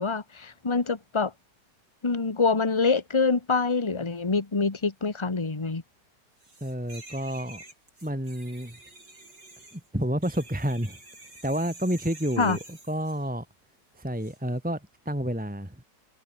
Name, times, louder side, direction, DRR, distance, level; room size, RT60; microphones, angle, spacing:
voice 1, 0.0-1.3 2.0-5.8 12.4-12.6, left 4 dB, 15° left, 1.5 m, -25 dB
sound 1, 6.4-13.3 14.2-14.4, right 2 dB, 75° right, 8.7 m, -48 dB
voice 2, 6.6-7.6 8.0-8.8 9.7-11.0 11.4-13.5 13.9-15.8, equal, 5° right, 2.7 m, -30 dB
omnidirectional pair, 1.9 m